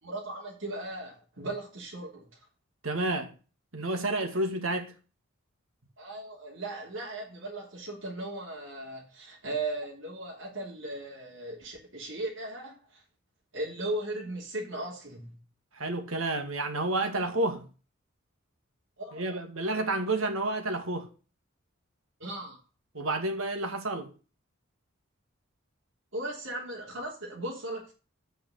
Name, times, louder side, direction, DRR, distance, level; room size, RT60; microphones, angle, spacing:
voice 1, 0.0-2.3 6.0-13.0 13.5-15.4 19.0-19.4 22.2-22.6 26.1-27.9, right 2 dB, 65° right, 3.4 m, -37 dB
voice 2, 2.8-3.3 3.7-4.9 15.7-17.7 19.1-21.1 22.9-24.1, right 2 dB, 85° right, 2.2 m, -30 dB
9.0 x 5.7 x 6.5 m
head